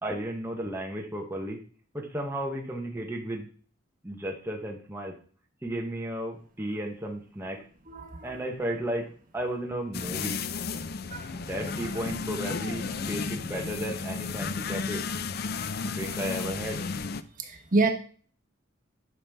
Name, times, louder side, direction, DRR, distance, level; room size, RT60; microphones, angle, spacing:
voice 1, 0.0-1.6 1.9-3.5 4.0-5.1 5.6-7.6 8.2-9.1 9.3-10.4 11.3-15.0 15.8-16.8, right 1 dB, 15° right, 0 dB, 1.0 m, -34 dB
voice 2, 7.9-8.4 11.1-11.2 17.4-17.9, right 3 dB, 45° right, 4 dB, 1.4 m, -27 dB
sound 1, 9.9-17.2, left 4 dB, 55° left, 0.5 m, -33 dB
11.0 x 5.7 x 3.5 m, 0.43 s
head